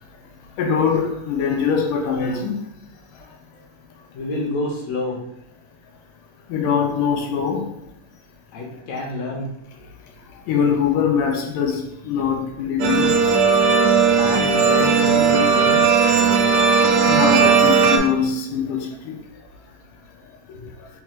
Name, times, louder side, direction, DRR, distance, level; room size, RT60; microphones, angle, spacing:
voice 1, 0.6-2.5 6.5-7.6 10.5-13.2 17.1-19.2, left 6 dB, 85° left, 1 dB, 2.3 m, -22 dB
voice 2, 4.1-5.2 8.5-9.5 14.2-16.0 20.5-20.7, left 2 dB, 65° left, -2 dB, 2.0 m, -28 dB
sound 1, 12.8-18.0, right 5 dB, 75° right, 1.7 m, -16 dB
4.6 x 4.2 x 2.4 m, 0.83 s
omnidirectional pair, 3.6 m